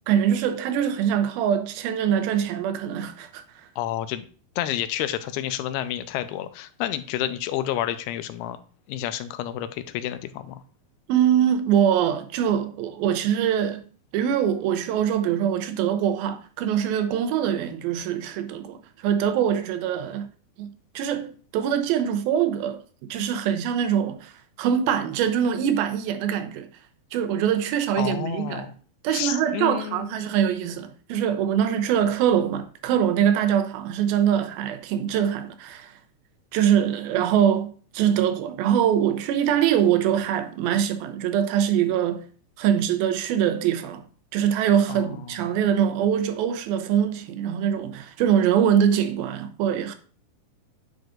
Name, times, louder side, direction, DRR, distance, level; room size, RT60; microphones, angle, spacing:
voice 1, 0.1-3.4 11.1-13.8 14.1-20.3 20.6-20.7 21.0-22.8 23.1-24.3 24.6-26.7 27.1-28.7 29.0-35.9 36.5-42.3 42.6-44.0 44.3-50.0, right 9 dB, 80° right, 2.5 m, -23 dB
voice 2, 3.8-4.3 4.6-8.6 8.9-10.6 28.0-28.7 29.1-30.2 44.9-45.4, left 12 dB, 90° left, 2.5 m, -30 dB
9.6 x 4.7 x 2.5 m
omnidirectional pair, 4.4 m